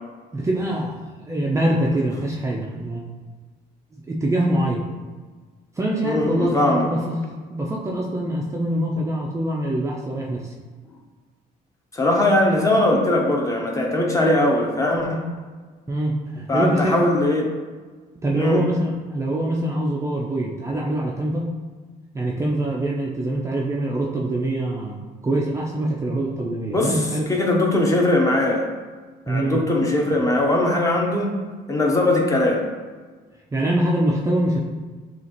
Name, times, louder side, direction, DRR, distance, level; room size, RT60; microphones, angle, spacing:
voice 1, 0.3-1.0 1.2-3.1 3.9-4.8 5.8-7.2 7.5-10.5 15.9-17.0 18.2-21.5 22.1-27.3 29.3-29.6 33.5-34.7, right 1 dB, 15° right, -2 dB, 0.5 m, -24 dB
voice 2, 6.0-6.9 11.9-15.3 16.5-17.5 18.3-18.6 26.7-28.7 29.3-31.3 31.7-32.6, left 1 dB, 20° left, 0 dB, 0.9 m, -20 dB
6.8 x 2.4 x 2.9 m, 1.4 s
cardioid pair, 110°, 17 cm